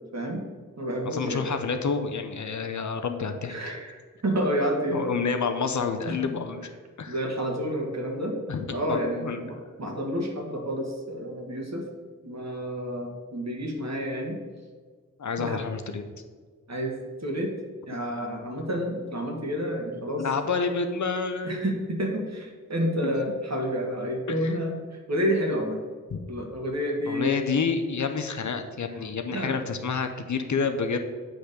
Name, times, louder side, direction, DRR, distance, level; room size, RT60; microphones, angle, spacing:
voice 1, 0.1-0.4 0.8-1.4 3.5-5.2 6.1-6.2 7.1-8.3 8.7-11.8 12.2-14.4 15.4-15.6 16.7-17.5 17.9-20.3 21.4-24.8 25.1-25.8 26.3-27.4 29.3-29.5, equal, 55° right, 1 dB, 1.5 m, -29 dB
voice 2, 1.0-3.5 4.9-6.7 7.0-7.2 8.5-9.4 15.2-16.0 20.2-21.7 24.4-24.6 26.1-26.2 27.1-31.0, left 5 dB, 65° left, 6 dB, 0.8 m, -29 dB
8.0 x 3.5 x 6.6 m, 1.5 s
cardioid pair, 55°, 32 cm